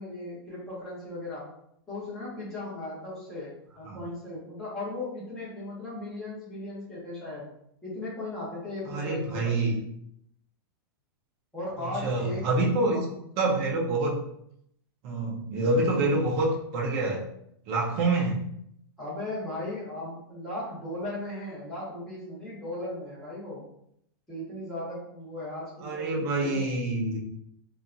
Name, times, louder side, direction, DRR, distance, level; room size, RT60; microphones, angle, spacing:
voice 1, 0.0-1.5 1.9-7.5 7.8-9.7 11.5-12.5 12.8-13.0 19.0-23.6 24.3-26.6, left 1 dB, 5° left, -10 dB, 0.8 m, -37 dB
voice 2, 8.9-9.8 12.0-13.0 13.4-14.2 15.0-17.2 17.7-18.4 25.8-27.2, right 2 dB, 20° right, -2 dB, 0.3 m, -26 dB
2.6 x 2.2 x 2.5 m, 0.74 s
supercardioid pair, 175°, 13 cm